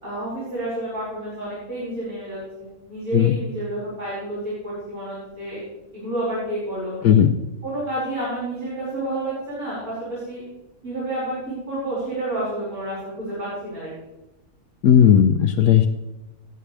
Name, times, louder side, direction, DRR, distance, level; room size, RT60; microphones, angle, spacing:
voice 1, 0.0-5.6 5.9-7.2 7.6-10.4 10.8-11.3 11.7-13.9, right 1 dB, 75° right, -10 dB, 5.8 m, -30 dB
voice 2, 3.1-3.4 7.0-7.3 14.8-15.9, left 9 dB, 80° left, 5 dB, 1.2 m, -15 dB
20.0 x 8.9 x 3.4 m, 1.0 s
omnidirectional pair, 1.5 m